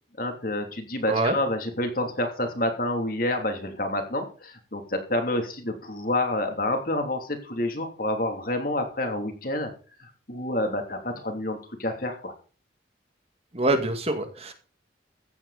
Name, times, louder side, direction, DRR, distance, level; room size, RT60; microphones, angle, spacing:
voice 1, 0.2-9.7 10.3-12.3, left 1 dB, 50° left, 4 dB, 3.1 m, -28 dB
voice 2, 13.5-14.5, right 2 dB, 35° right, 6 dB, 2.3 m, -25 dB
15.0 x 10.5 x 4.2 m, 0.37 s
head